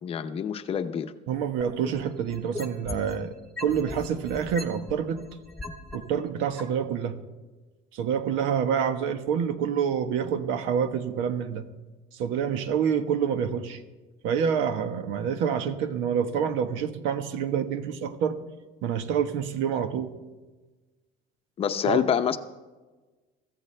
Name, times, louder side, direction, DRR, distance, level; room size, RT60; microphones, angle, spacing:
voice 1, 0.0-1.1 21.6-22.4, left 8 dB, 30° left, 9 dB, 0.7 m, -26 dB
voice 2, 1.3-3.3 3.6-5.2 5.9-7.2 7.9-11.6 12.1-13.8 14.2-18.4 18.8-20.1 21.8-22.0, right 7 dB, 85° right, 8 dB, 1.4 m, -27 dB
sound 1, 1.6-3.2 3.6-6.0 6.6-6.7, left 3 dB, 5° left, 1.1 m, -37 dB
24.0 x 14.5 x 3.4 m, 1.2 s
cardioid pair, 175°, 19 cm